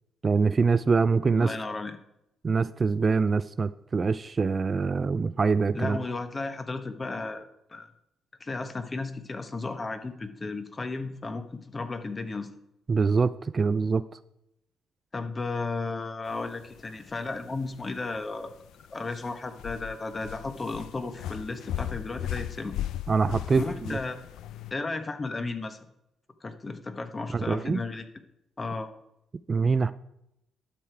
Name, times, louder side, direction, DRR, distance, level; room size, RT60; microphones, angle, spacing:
voice 1, 0.2-1.5 2.4-6.0 12.9-14.0 23.1-24.0 27.3-27.8 29.5-29.9, right 4 dB, 35° right, 15 dB, 0.3 m, -24 dB
voice 2, 1.4-2.0 5.8-7.9 8.4-12.5 15.1-18.5 18.9-22.7 23.6-24.2 24.7-25.8 26.4-28.0 28.6-28.9, left 3 dB, 30° left, 9 dB, 1.1 m, -34 dB
sound 1, 16.3-24.7, left 12 dB, 85° left, 0.4 m, -38 dB
11.5 x 6.7 x 4.6 m, 0.83 s
cardioid pair, 90°, 0 cm